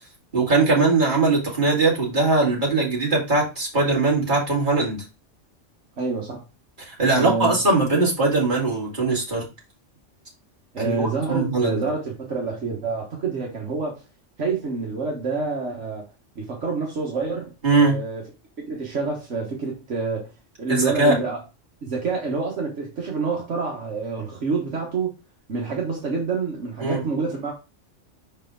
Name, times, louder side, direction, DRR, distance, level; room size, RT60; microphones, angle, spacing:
voice 1, 0.3-5.0 6.8-9.4 10.8-11.8 17.6-18.0 20.7-21.2 26.8-27.0, right 3 dB, 40° right, 2.8 m, -20 dB
voice 2, 6.0-6.4 7.1-7.6 10.7-14.0 14.4-16.0 16.3-18.2 18.6-20.3 20.6-21.4 21.8-25.1 25.5-27.5, right 4 dB, 70° right, 1.7 m, -27 dB
5.7 x 4.7 x 3.8 m
omnidirectional pair, 1.3 m